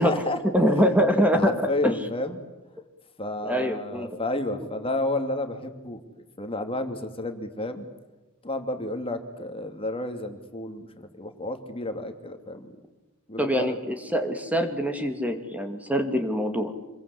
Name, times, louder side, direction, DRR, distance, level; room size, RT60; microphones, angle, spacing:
voice 1, 0.0-0.4 0.8-0.9 1.3-2.4 3.2-6.0 6.4-7.9 8.4-12.7 13.3-13.8, left 2 dB, 25° left, 6 dB, 2.6 m, -31 dB
voice 2, 0.5-1.5 1.8-1.9 3.4-4.1 13.4-16.7, equal, 5° right, 6 dB, 2.4 m, -24 dB
27.0 x 22.5 x 8.5 m, 1.1 s
head